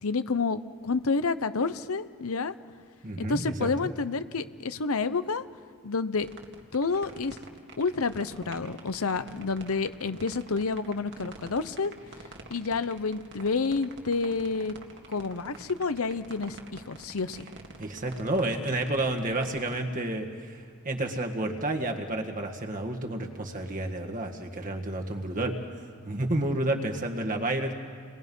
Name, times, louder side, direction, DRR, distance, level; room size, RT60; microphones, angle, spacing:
voice 1, 0.0-2.5 3.2-5.4 5.8-6.3 6.7-7.4 7.8-11.9 12.5-14.7 15.1-17.4, left 4 dB, 70° left, 13 dB, 0.8 m, -29 dB
voice 2, 3.0-3.9 17.8-25.6 26.0-27.7, right 1 dB, 40° right, 3 dB, 1.8 m, -30 dB
sound 1, 6.2-19.8, right 3 dB, 55° right, 2.1 m, -46 dB
28.5 x 21.5 x 5.5 m, 2.2 s
head